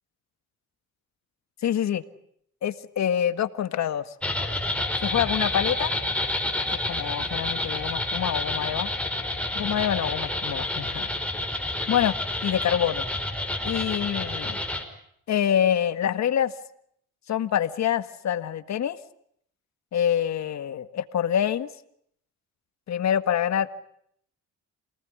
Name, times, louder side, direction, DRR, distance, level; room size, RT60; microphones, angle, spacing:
voice 1, 1.6-2.0 2.6-4.1 5.0-5.9 6.7-8.9 9.6-11.1 11.9-12.2 12.4-13.1 13.6-14.6 15.3-16.5 17.3-19.0 19.9-21.7 22.9-23.7, left 9 dB, 65° left, 11 dB, 1.8 m, -26 dB
sound 1, 4.2-14.8, left 1 dB, 5° left, 5.0 m, -29 dB
28.5 x 19.0 x 9.6 m, 0.70 s
cardioid pair, 90°, 30 cm